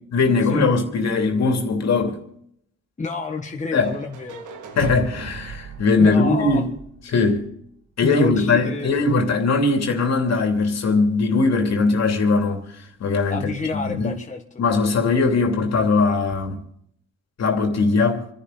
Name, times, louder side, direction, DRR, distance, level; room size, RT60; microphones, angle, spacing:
voice 1, 0.1-2.2 3.7-3.9 4.8-6.7 7.1-7.4 8.0-12.7 13.0-14.2 14.6-16.6 17.4-18.3, left 3 dB, 60° left, 2.8 m, -20 dB
voice 2, 3.0-4.4 6.0-6.6 8.0-9.1 13.3-14.4, left 4 dB, 25° left, 1.5 m, -29 dB
sound 1, 3.8-7.7, right 4 dB, 80° right, 1.7 m, -36 dB
29.0 x 11.0 x 4.0 m
cardioid pair, 90°, 30 cm